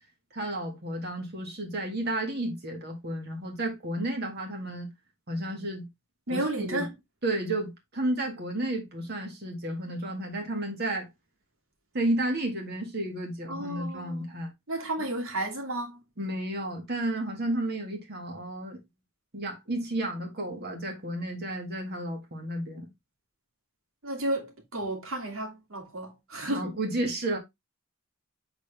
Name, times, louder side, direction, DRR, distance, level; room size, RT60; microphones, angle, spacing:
voice 1, 0.3-4.9 5.3-5.9 6.3-6.9 7.2-11.1 11.9-14.5 16.2-18.8 19.3-22.9 26.4-27.4, right 1 dB, 50° right, 1.9 m, -32 dB
voice 2, 6.3-6.9 13.5-14.3 14.7-16.0 24.0-26.7, right 1 dB, 90° right, 2.7 m, -32 dB
8.0 x 4.3 x 3.4 m
head